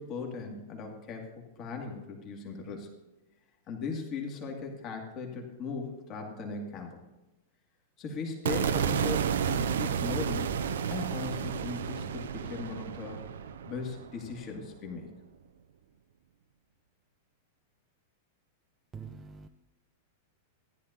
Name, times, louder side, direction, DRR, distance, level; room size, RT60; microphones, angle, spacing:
voice 1, 0.0-2.9 3.7-7.0 8.0-10.5 10.9-13.3 13.6-15.1, left 4 dB, 35° left, 1 dB, 2.2 m, -38 dB
sound 1, 8.5-14.7, right 7 dB, 65° right, 0.6 m, -31 dB
voice 2, 18.9-19.5, right 5 dB, 20° right, 5 dB, 0.5 m, -44 dB
14.5 x 11.0 x 2.8 m, 1.0 s
figure-of-eight pair, 95°, 0 cm